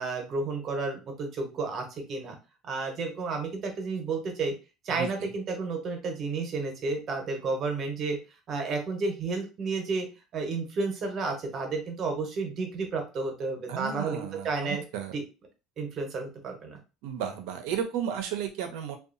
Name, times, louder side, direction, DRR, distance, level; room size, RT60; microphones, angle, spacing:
voice 1, 0.0-2.3 2.6-4.5 4.8-8.2 8.5-10.1 10.3-14.8 15.1-15.2 15.8-16.8, right 4 dB, 45° right, 4 dB, 0.9 m, -31 dB
voice 2, 4.9-5.3 13.7-15.1 17.0-19.0, right 9 dB, 75° right, 6 dB, 0.6 m, -34 dB
2.7 x 2.3 x 2.5 m, 0.31 s
supercardioid pair, 110°, 0 cm